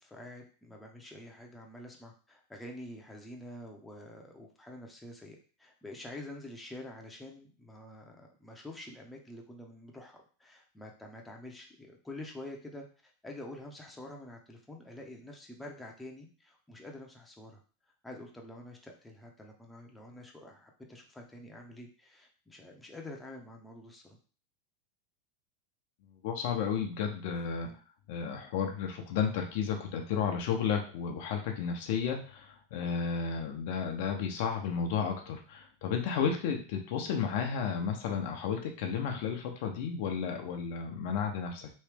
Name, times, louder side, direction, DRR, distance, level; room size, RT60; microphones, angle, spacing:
voice 1, 0.0-17.6 18.0-24.2 27.6-27.8, left 1 dB, 10° left, 0 dB, 0.8 m, -47 dB
voice 2, 26.2-27.7 28.1-41.7, left 7 dB, 65° left, 3 dB, 0.7 m, -32 dB
3.1 x 2.7 x 3.4 m, 0.38 s
hypercardioid pair, 110°, 0 cm